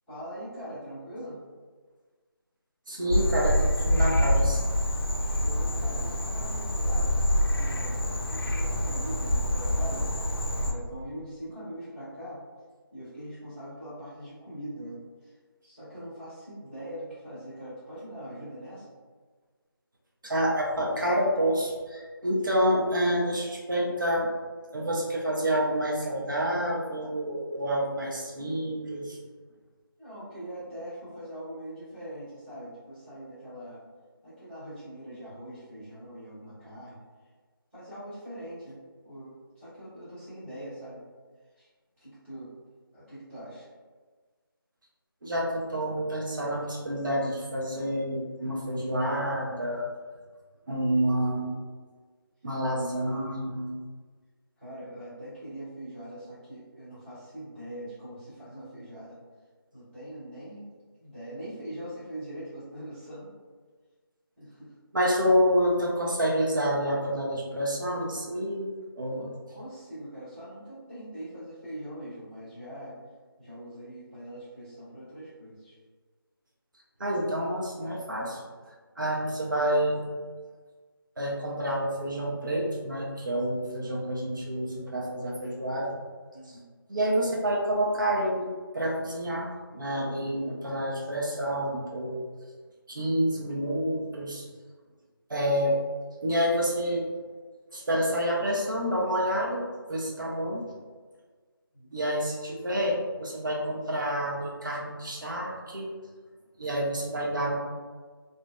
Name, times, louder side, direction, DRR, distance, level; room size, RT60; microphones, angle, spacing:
voice 1, 0.1-1.4 5.2-7.2 7.5-10.1 10.6-12.4 12.9-15.3 15.6-18.9 30.0-33.8 34.2-37.0 37.7-41.0 41.6-41.7 42.0-42.5 42.9-43.7 54.6-59.1 59.7-60.6 61.0-63.3 64.4-64.7 69.2-73.0 73.4-75.8 86.3-86.7 101.7-102.0, right 1 dB, ahead, -27 dB, 0.7 m, -42 dB
voice 2, 2.9-4.6 20.2-24.3 24.7-29.2 45.2-49.9 50.7-51.6 52.4-53.8 64.9-69.2 77.0-78.4 79.0-80.0 81.2-86.0 86.5-86.6 86.9-92.2 92.9-94.5 95.3-95.8 96.2-97.0 97.7-99.6 99.9-100.7 101.9-105.9 106.6-107.5, equal, 55° right, -3 dB, 0.7 m, -28 dB
Frog, 3.1-10.7, equal, 65° left, 0.5 m, -26 dB
2.6 x 2.1 x 2.2 m, 1.4 s
figure-of-eight pair, 170°, 13 cm